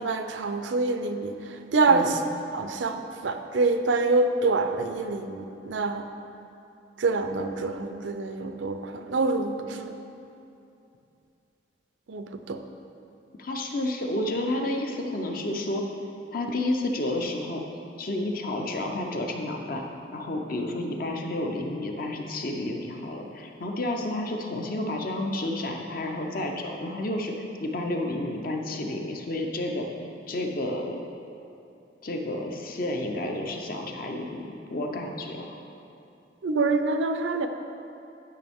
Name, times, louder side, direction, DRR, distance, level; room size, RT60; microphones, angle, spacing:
voice 1, 0.0-1.3 1.7-2.2 2.5-6.0 7.0-9.9 12.1-12.6 36.4-37.5, right 3 dB, 80° right, 7 dB, 0.5 m, -26 dB
voice 2, 13.4-15.8 16.3-17.6 18.0-19.8 20.1-27.3 27.6-29.9 30.3-31.0 32.0-35.6, left 1 dB, 50° left, 2 dB, 0.7 m, -30 dB
10.0 x 6.2 x 3.6 m, 2.7 s
head